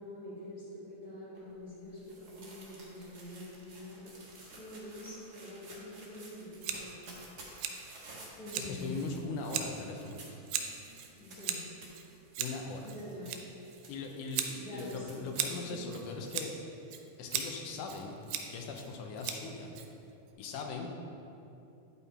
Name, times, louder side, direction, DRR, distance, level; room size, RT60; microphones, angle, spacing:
voice 1, 0.0-7.2 7.4-7.8 8.3-9.2 11.2-11.6 12.8-13.4 14.6-15.3 15.6-16.0, left 1 dB, 45° left, -12 dB, 2.1 m, -46 dB
sound 1, 1.3-16.4, right 2 dB, 50° right, 1.2 m, -54 dB
Scissors, 6.6-20.3, right 8 dB, 85° right, 2.2 m, -40 dB
voice 2, 8.6-10.2 12.4-12.9 13.9-16.6 17.2-18.2 18.5-19.7 20.4-20.9, left 4 dB, 80° left, 2 dB, 2.3 m, -40 dB
10.0 x 5.6 x 4.3 m, 2.8 s
omnidirectional pair, 3.7 m